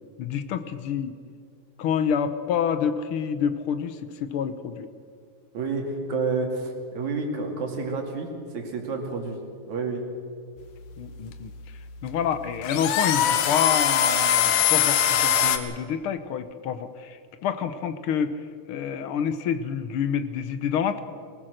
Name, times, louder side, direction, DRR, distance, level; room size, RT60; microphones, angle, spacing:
voice 1, 0.2-1.1 1.8-4.9 11.0-18.4 18.7-21.0, left 7 dB, 70° left, 10 dB, 1.3 m, -28 dB
voice 2, 5.5-8.3 8.5-9.4 9.7-10.0, right 4 dB, 65° right, 2 dB, 3.7 m, -29 dB
sound 1, 10.6-15.6, left 9 dB, 85° left, 2.6 m, -22 dB
21.5 x 19.5 x 6.5 m, 2.2 s
omnidirectional pair, 3.6 m